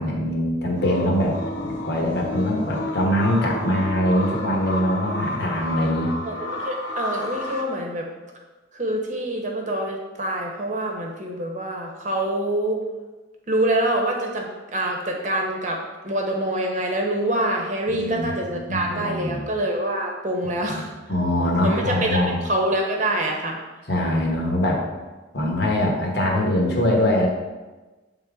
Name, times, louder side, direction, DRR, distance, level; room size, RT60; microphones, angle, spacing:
voice 1, 0.0-1.4 1.6-6.1 17.9-19.5 20.4-20.8 21.1-22.4 23.9-24.8 25.3-27.3, left 1 dB, 55° left, 0 dB, 1.1 m, -23 dB
sound 1, 0.7-7.6, left 2 dB, 75° left, 1.0 m, -31 dB
voice 2, 6.2-8.1 8.7-12.8 13.5-20.9 21.6-23.6, right 1 dB, 40° right, 1 dB, 0.9 m, -25 dB
7.5 x 3.7 x 3.6 m, 1.2 s
head